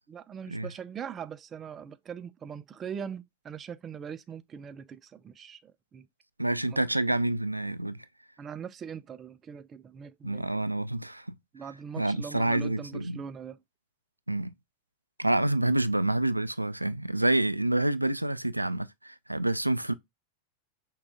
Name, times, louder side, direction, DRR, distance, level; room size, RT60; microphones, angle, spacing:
voice 1, 0.1-6.1 6.7-6.8 8.4-10.5 11.5-13.6, right 7 dB, 25° right, 0.4 m, -41 dB
voice 2, 6.4-8.1 10.2-11.3 12.0-13.2 14.3-14.5 15.2-19.9, right 1 dB, 85° right, 0.3 m, -28 dB
6.0 x 2.4 x 3.6 m
figure-of-eight pair, 90°, 0 cm